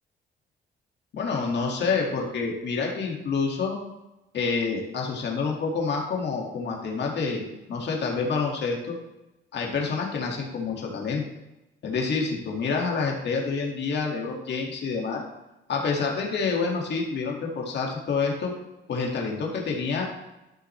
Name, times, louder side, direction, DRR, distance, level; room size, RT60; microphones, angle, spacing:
voice 1, 1.1-3.8 4.3-9.0 9.5-11.2 11.8-15.2 15.7-18.5 18.9-20.1, left 4 dB, 60° left, -1 dB, 2.0 m, -28 dB
12.5 x 6.0 x 3.2 m, 0.96 s
cardioid pair, 90°, 20 cm